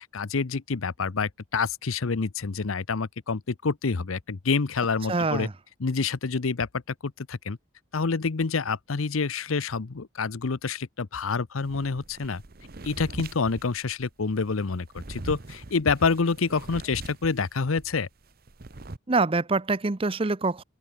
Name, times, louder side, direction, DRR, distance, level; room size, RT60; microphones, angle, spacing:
voice 1, 0.1-5.5 5.8-7.6 7.9-12.4 12.8-18.1, left 4 dB, 85° left, 0.8 m, -27 dB
voice 2, 5.1-5.5 19.1-20.6, right 3 dB, 25° right, 0.7 m, -25 dB
sound 1, 11.6-17.9 18.2-19.0, right 2 dB, 45° right, 1.0 m, -42 dB
open air
head